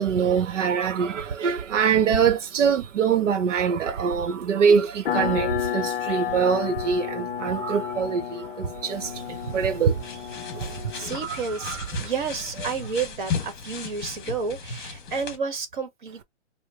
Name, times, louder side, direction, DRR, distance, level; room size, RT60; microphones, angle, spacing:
voice 1, 0.0-5.5 5.7-8.2 8.9-9.0 9.5-9.9 11.7-11.8, right 7 dB, 90° right, 0.8 m, -23 dB
sound 1, 5.1-11.3, left 10 dB, 55° left, 0.5 m, -31 dB
sound 2, 8.9-15.4, left 5 dB, 20° left, 1.0 m, -36 dB
voice 2, 10.7-16.2, right 5 dB, 45° right, 1.3 m, -31 dB
4.8 x 2.0 x 2.9 m
hypercardioid pair, 170°, 36 cm